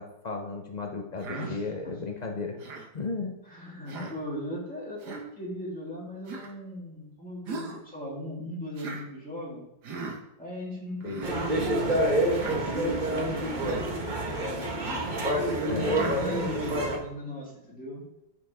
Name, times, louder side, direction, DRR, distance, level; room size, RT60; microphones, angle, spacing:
voice 1, 0.0-2.6 2.9-3.4 4.0-4.1 11.0-11.2 15.7-16.2, left 3 dB, 70° left, 2 dB, 0.4 m, -34 dB
Human voice, 1.2-1.5 2.6-2.9 3.9-4.2 5.0-5.2 6.3-6.5 7.5-7.8 8.8-9.0 9.8-10.2 11.0-11.4 12.3-12.6 13.6-13.9 14.8-15.1 15.9-16.2, right 4 dB, 60° right, 1.8 m, -38 dB
voice 2, 1.3-1.7 3.5-9.6 10.4-14.9 15.6-18.0, equal, 5° left, -6 dB, 3.1 m, -38 dB
sound 1, 11.2-17.0, right 1 dB, 30° right, 1.2 m, -27 dB
13.0 x 6.2 x 3.5 m, 0.87 s
omnidirectional pair, 2.1 m